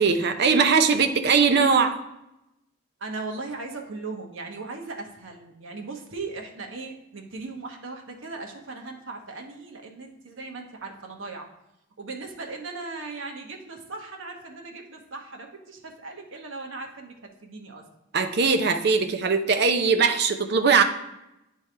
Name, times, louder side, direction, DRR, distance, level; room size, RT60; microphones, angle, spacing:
voice 1, 0.0-2.0 18.1-20.8, right 5 dB, 55° right, 7 dB, 0.5 m, -20 dB
voice 2, 3.0-11.5 12.0-17.9, right 3 dB, 75° right, 2 dB, 1.0 m, -38 dB
10.0 x 3.4 x 3.3 m, 0.88 s
head